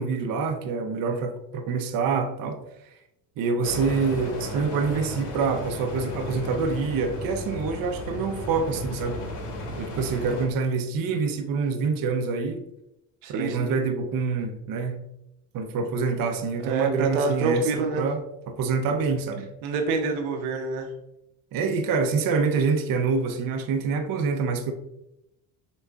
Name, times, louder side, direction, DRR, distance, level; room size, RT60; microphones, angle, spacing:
voice 1, 0.0-2.6 3.4-9.2 9.8-12.6 13.3-15.1 15.5-19.5 21.5-24.7, right 4 dB, 45° right, 0.6 m, -26 dB
sound 1, 3.6-10.5, left 1 dB, 65° left, 1.2 m, -34 dB
voice 2, 13.2-13.7 16.6-18.1 19.6-20.9, right 4 dB, 75° right, 0.8 m, -26 dB
6.5 x 2.3 x 2.3 m
supercardioid pair, 65°, 47 cm